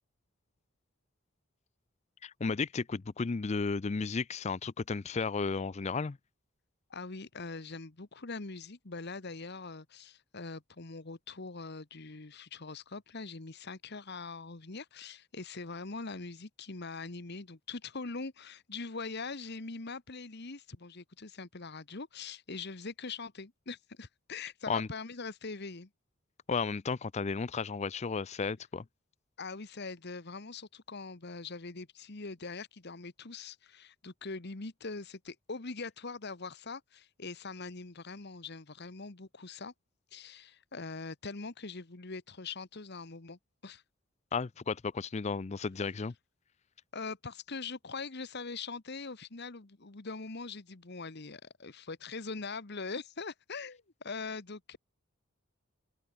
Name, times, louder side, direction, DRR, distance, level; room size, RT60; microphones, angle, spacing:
voice 1, 2.2-6.2 24.7-24.9 26.5-28.8 44.3-46.1, left 4 dB, 35° left, 0.5 m, -33 dB
voice 2, 6.9-25.9 29.4-39.7 40.1-43.8 46.9-54.8, left 4 dB, 55° left, 1.4 m, -42 dB
open air
head